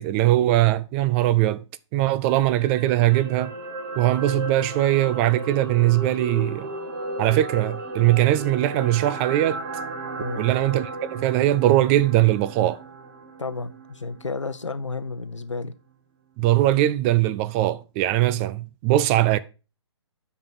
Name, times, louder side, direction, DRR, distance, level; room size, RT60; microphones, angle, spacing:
voice 1, 0.0-1.6 1.9-3.5 4.0-6.7 7.2-9.6 10.4-12.8 16.4-19.4, right 14 dB, 25° right, 0.5 m, -21 dB
sound 1, 2.2-14.6 14.9-15.1, right 2 dB, 45° right, 2.2 m, -35 dB
voice 2, 13.4-15.7, left 3 dB, 85° left, 0.9 m, -32 dB
8.6 x 5.3 x 5.3 m
figure-of-eight pair, 130°, 15 cm